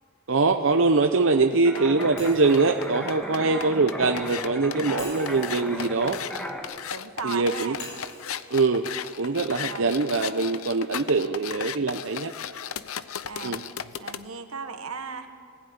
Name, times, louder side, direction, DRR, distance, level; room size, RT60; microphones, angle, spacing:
voice 1, 0.3-6.2 7.2-7.8 8.5-8.9 9.2-12.3 13.4-13.7, right 3 dB, 60° right, 5 dB, 0.7 m, -23 dB
sound 1, 1.5-14.2, left 8 dB, 80° left, 0.7 m, -36 dB
sound 2, 1.6-6.6, equal, 5° left, 1.9 m, -36 dB
voice 2, 1.7-2.1 3.4-3.8 6.9-7.8 9.6-9.9 13.3-13.6 14.0-15.3, right 5 dB, 85° right, 7 dB, 1.5 m, -36 dB
Shatter, 2.2-4.2 5.0-7.1 7.8-9.9, left 2 dB, 55° left, 6.8 m, -46 dB
20.5 x 15.5 x 9.5 m, 2.2 s
head